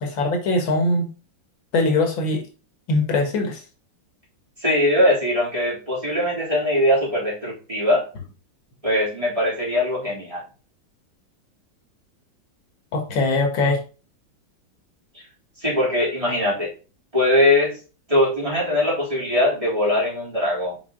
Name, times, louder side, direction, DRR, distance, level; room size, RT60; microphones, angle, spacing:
voice 1, 0.0-1.1 1.7-2.4 2.9-3.6 12.9-13.8, left 2 dB, 90° left, 3 dB, 2.2 m, -21 dB
voice 2, 4.6-8.0 8.8-10.4 15.6-16.7 17.1-17.7 18.1-20.8, left 1 dB, 15° right, -7 dB, 3.3 m, -21 dB
5.9 x 4.9 x 3.7 m, 0.35 s
omnidirectional pair, 2.1 m